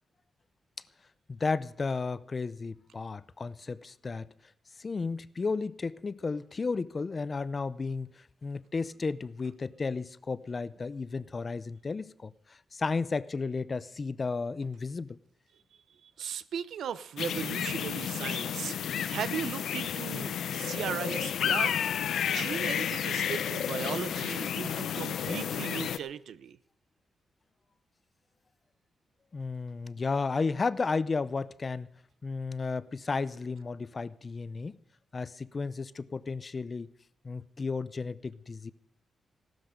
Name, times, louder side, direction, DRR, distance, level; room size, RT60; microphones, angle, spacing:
voice 1, 1.3-4.3 4.8-15.2 29.3-31.9 32.2-34.8 35.1-36.9 37.2-38.7, left 4 dB, 30° left, 0.5 m, -33 dB
voice 2, 16.0-18.8 19.1-21.8 22.3-26.6, right 8 dB, 85° right, 0.6 m, -37 dB
sound 1, 17.2-26.0, left 9 dB, 85° left, 0.6 m, -31 dB
16.0 x 12.5 x 5.1 m
wide cardioid pair, 130°, 0 cm